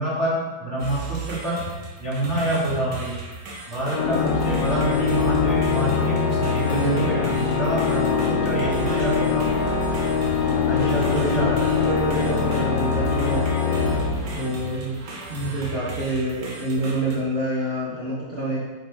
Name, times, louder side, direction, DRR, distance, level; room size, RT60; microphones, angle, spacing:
voice 1, 0.0-1.6 2.0-3.1 3.7-9.6 10.5-11.9 15.4-15.6, right 1 dB, 40° left, -8 dB, 2.6 m, -27 dB
sound 1, 0.8-17.2, right 4 dB, 75° right, 1.8 m, -35 dB
Organ, 3.9-14.9, left 6 dB, 70° left, 0.9 m, -23 dB
voice 2, 4.0-4.4 6.7-7.1 10.5-11.4 11.8-13.5 14.3-15.0 15.3-18.6, right 1 dB, 40° right, -7 dB, 1.4 m, -27 dB
8.5 x 5.3 x 3.6 m, 1.3 s
omnidirectional pair, 1.9 m